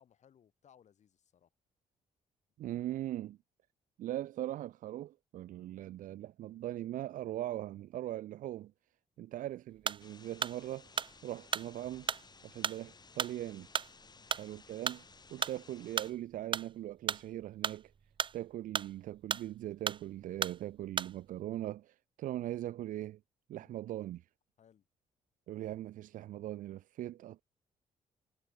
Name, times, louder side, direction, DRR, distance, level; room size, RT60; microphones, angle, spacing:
voice 1, 0.0-1.5 9.2-9.3 14.1-14.3 23.6-23.8 24.6-24.9, left 8 dB, 60° left, 7.3 m, -65 dB
voice 2, 2.6-3.4 4.0-8.7 9.2-10.9 11.2-12.1 12.4-13.7 14.4-15.0 15.3-17.9 18.3-23.2 23.5-24.2 25.5-27.4, right 13 dB, 80° right, 0.8 m, -40 dB
sound 1, 9.8-21.4, right 6 dB, 40° right, 0.7 m, -36 dB
sound 2, 10.0-16.1, left 4 dB, 30° left, 3.6 m, -58 dB
cardioid pair, 100°, 13 cm